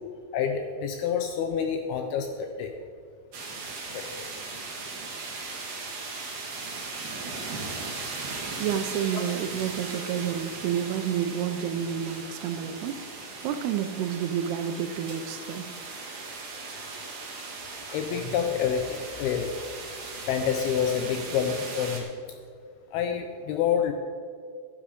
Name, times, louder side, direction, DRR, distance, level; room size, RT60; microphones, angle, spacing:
voice 1, 0.3-2.7 3.9-4.0 17.9-19.5 20.3-22.1 22.9-23.9, left 8 dB, 80° left, 6 dB, 2.4 m, -28 dB
sound 1, 3.3-22.0, right 3 dB, 55° right, 2.8 m, -38 dB
voice 2, 8.6-13.1 13.4-15.7, right 9 dB, 80° right, 8 dB, 2.5 m, -30 dB
12.0 x 10.5 x 5.1 m, 2.1 s
omnidirectional pair, 5.0 m